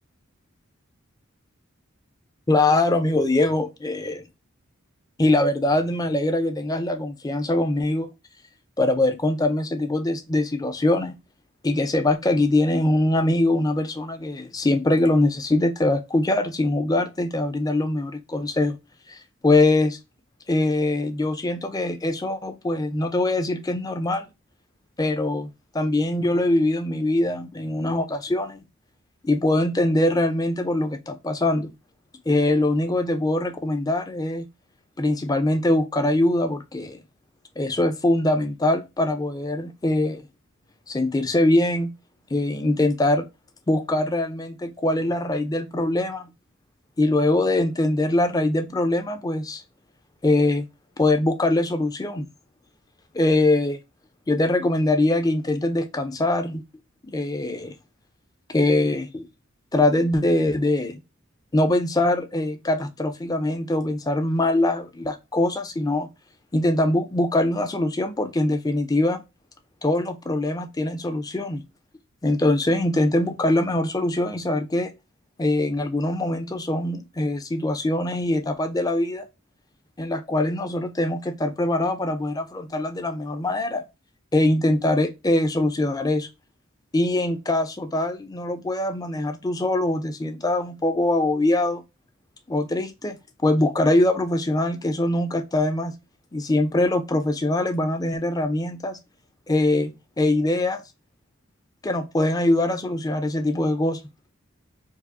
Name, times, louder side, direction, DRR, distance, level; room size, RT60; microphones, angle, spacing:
voice 1, 2.5-4.3 5.2-8.1 8.8-11.1 11.6-18.8 19.1-20.0 20.5-24.2 25.0-25.5 25.7-28.6 29.2-31.7 32.3-34.5 35.0-37.0 37.6-40.2 40.9-41.9 42.3-43.2 43.7-46.3 47.0-49.6 50.2-50.7 51.0-52.3 53.1-53.8 54.3-56.6 57.1-57.7 58.5-59.3 59.7-61.0 61.5-66.1 66.5-69.2 69.8-71.6 72.2-74.9 75.4-79.3 80.0-83.8 84.3-86.3 86.9-91.8 92.5-95.9 96.3-99.0 99.5-100.8 101.8-104.0, left 2 dB, 20° left, 0.4 m, -23 dB
4.6 x 2.0 x 2.6 m
head